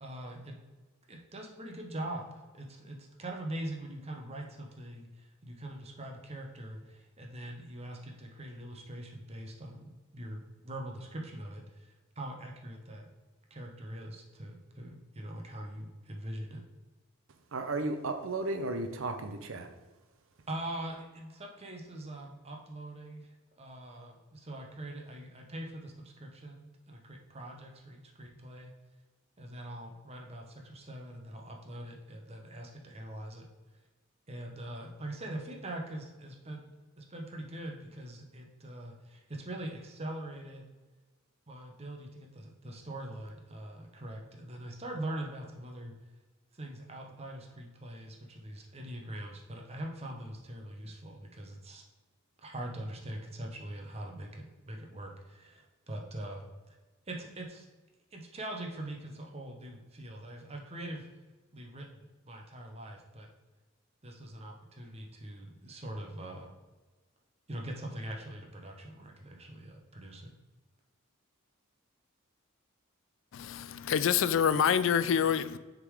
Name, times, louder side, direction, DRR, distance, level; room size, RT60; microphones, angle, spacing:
voice 1, 0.0-0.5 1.1-13.1 13.5-16.6 20.5-28.7 29.4-33.4 34.3-40.7 41.5-45.9 46.5-51.8 52.4-56.8 57.1-57.7 58.1-61.1 61.5-63.3 64.0-66.5 67.5-70.3, right 1 dB, 30° right, 1 dB, 1.0 m, -43 dB
voice 2, 17.5-19.7, right 2 dB, 65° right, 7 dB, 0.7 m, -34 dB
voice 3, 73.3-75.6, left 8 dB, 65° left, 14 dB, 0.3 m, -27 dB
6.6 x 3.8 x 4.8 m, 1.3 s
head